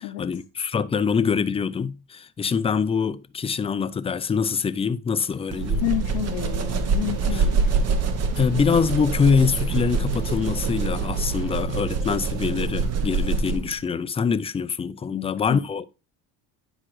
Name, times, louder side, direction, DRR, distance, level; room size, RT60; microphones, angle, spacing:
voice 1, 0.0-5.8 7.3-7.4 8.4-15.9, left 6 dB, 15° left, 0.3 m, -24 dB
sound 1, 5.2-11.6, right 3 dB, 75° right, 2.0 m, -45 dB
sound 2, 5.5-13.8, right 4 dB, 45° right, 0.9 m, -25 dB
voice 2, 5.8-7.6 15.1-15.6, left 15 dB, 75° left, 0.8 m, -30 dB
9.9 x 4.9 x 3.1 m
supercardioid pair, 95°, 37 cm